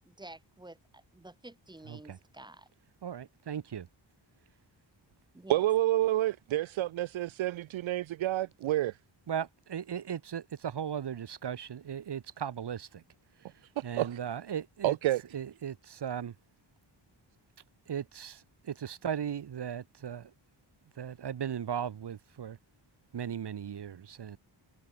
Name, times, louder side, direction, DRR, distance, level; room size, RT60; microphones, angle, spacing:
voice 1, 0.0-2.7 5.3-5.6, right 2 dB, 10° right, 1.7 m, -50 dB
voice 2, 1.9-2.2 3.0-3.9 9.3-13.0 13.4-13.5 13.8-15.0 15.3-16.3 17.9-20.3 21.0-22.6 23.1-24.4, right 8 dB, 60° right, 1.3 m, -37 dB
voice 3, 5.5-8.9 14.0-14.2 14.8-15.2, right 14 dB, 80° right, 0.6 m, -28 dB
wide cardioid pair, 105°, 46 cm